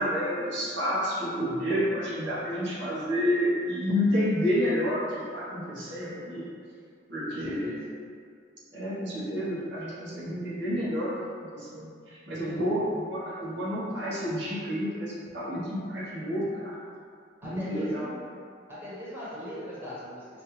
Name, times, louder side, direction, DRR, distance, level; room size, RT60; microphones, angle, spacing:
voice 1, 0.0-6.4 7.1-7.9 8.7-16.8 17.4-18.1, equal, 65° right, -7 dB, 0.9 m, -29 dB
voice 2, 7.3-7.8 12.3-12.6 17.4-18.1 18.7-20.4, equal, 10° right, -10 dB, 1.1 m, -40 dB
5.1 x 2.3 x 3.0 m, 2.3 s
head